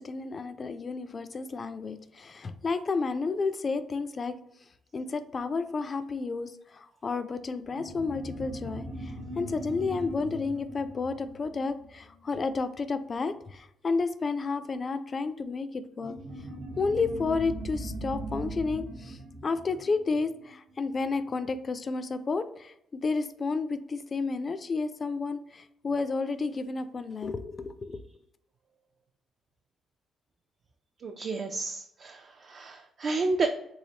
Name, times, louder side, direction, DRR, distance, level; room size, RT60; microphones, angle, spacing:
voice 1, 0.0-4.3 4.9-16.2 16.8-28.0, left 4 dB, 40° left, 11 dB, 0.3 m, -31 dB
sound 1, 7.7-12.6 16.0-20.9, right 1 dB, 70° right, 0.8 m, -40 dB
voice 2, 31.0-33.5, right 3 dB, 50° right, 4 dB, 0.3 m, -31 dB
3.3 x 3.1 x 2.8 m, 0.80 s
cardioid pair, 90°, 0 cm